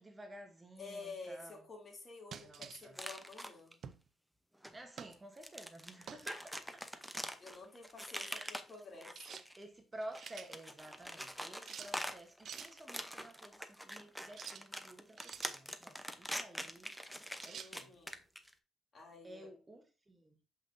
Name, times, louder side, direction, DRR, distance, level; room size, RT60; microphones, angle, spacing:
voice 1, 0.0-1.7 2.4-3.0 4.7-7.1 8.2-8.5 9.6-16.9 17.4-17.9 19.2-20.4, right 1 dB, 20° right, 1.1 m, -52 dB
voice 2, 0.8-3.8 7.4-9.4 17.5-18.2 18.9-19.5, left 3 dB, 40° left, 2.8 m, -50 dB
sound 1, 2.3-2.9 3.8-4.1 5.0-5.2 6.1-6.3 9.2-9.5 9.9-10.5 11.7-11.9 12.5-12.7 14.3-14.7 15.2-15.6 17.4-17.7, right 7 dB, 60° right, 0.6 m, -49 dB
sound 2, 2.9-3.7 4.6-4.7 5.1-9.6 10.0-18.5, equal, ahead, 0.7 m, -44 dB
7.2 x 5.6 x 2.7 m
cardioid pair, 90°, 0 cm